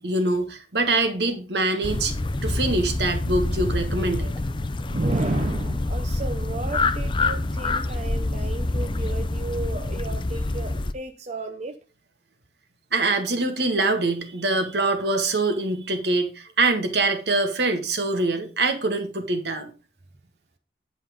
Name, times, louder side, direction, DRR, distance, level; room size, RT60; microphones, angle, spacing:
voice 1, 0.0-2.1 2.4-4.3 12.9-19.7, right 2 dB, 65° right, 1.6 m, -24 dB
sound 1, 1.8-10.9, left 2 dB, 25° left, 0.6 m, -26 dB
voice 2, 4.9-11.8 18.1-18.2, right 2 dB, 40° right, 0.8 m, -32 dB
10.0 x 5.7 x 5.0 m
head